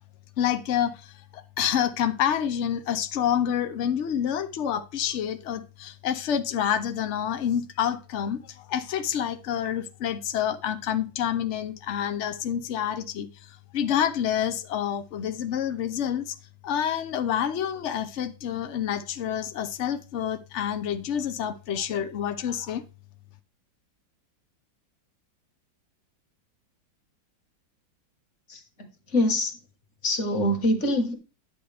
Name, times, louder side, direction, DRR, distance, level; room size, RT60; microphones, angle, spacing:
voice 1, 0.4-16.4 16.6-22.8, left 9 dB, 85° left, 9 dB, 0.6 m, -28 dB
voice 2, 28.5-29.6 30.0-31.1, left 1 dB, 40° left, 5 dB, 1.6 m, -25 dB
10.5 x 7.7 x 3.4 m, 0.32 s
omnidirectional pair, 2.1 m